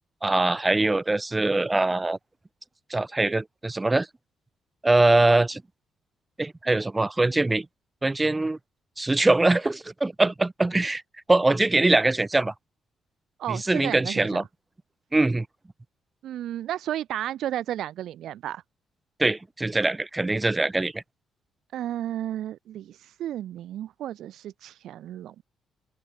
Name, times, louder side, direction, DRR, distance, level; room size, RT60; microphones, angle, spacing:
voice 1, 0.2-2.2 2.9-4.1 4.8-5.6 6.4-7.7 8.0-8.6 9.0-11.0 11.3-12.5 13.5-14.5 15.1-15.5 19.2-21.0, right 2 dB, 15° right, 0.5 m, -22 dB
voice 2, 13.4-14.4 16.2-18.6 21.7-25.4, right 12 dB, 75° right, 1.3 m, -33 dB
open air
cardioid pair, 90°, 0 cm